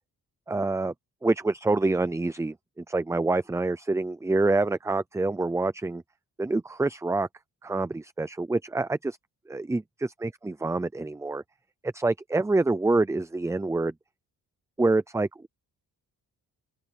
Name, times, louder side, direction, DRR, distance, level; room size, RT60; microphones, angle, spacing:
voice 1, 0.5-0.9 1.2-6.0 6.4-7.3 7.6-9.2 9.5-11.4 11.8-13.9 14.8-15.5, right 2 dB, 10° right, 0.5 m, -26 dB
open air
wide cardioid pair, 135°, 34 cm